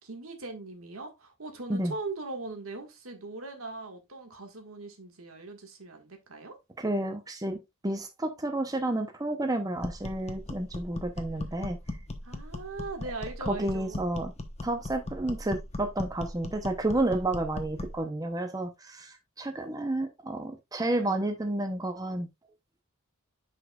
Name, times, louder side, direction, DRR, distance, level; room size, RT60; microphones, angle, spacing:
voice 1, 0.0-6.6 11.5-11.6 12.2-14.2, right 3 dB, 80° right, 1.8 m, -40 dB
voice 2, 6.8-7.6 7.8-11.8 13.5-14.3 14.6-22.3, right 1 dB, 15° right, 0.7 m, -31 dB
sound 1, 9.8-18.0, left 1 dB, 30° left, 0.9 m, -38 dB
9.6 x 5.1 x 2.4 m
head